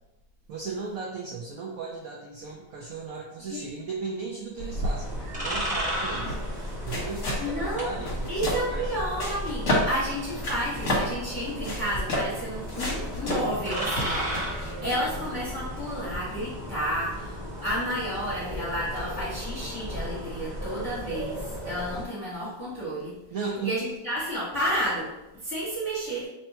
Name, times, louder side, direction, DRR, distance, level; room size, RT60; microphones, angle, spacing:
voice 1, 0.5-6.4 6.8-8.9 23.3-23.8, right 4 dB, 75° right, -2 dB, 0.8 m, -36 dB
sound 1, 4.6-15.5, left 1 dB, 50° left, 1.2 m, -32 dB
sound 2, 4.6-22.0, equal, 5° right, 0.6 m, -35 dB
voice 2, 7.4-7.9 8.3-23.1 23.6-26.3, equal, 15° left, -11 dB, 1.2 m, -31 dB
3.3 x 2.8 x 4.2 m, 0.95 s
omnidirectional pair, 2.1 m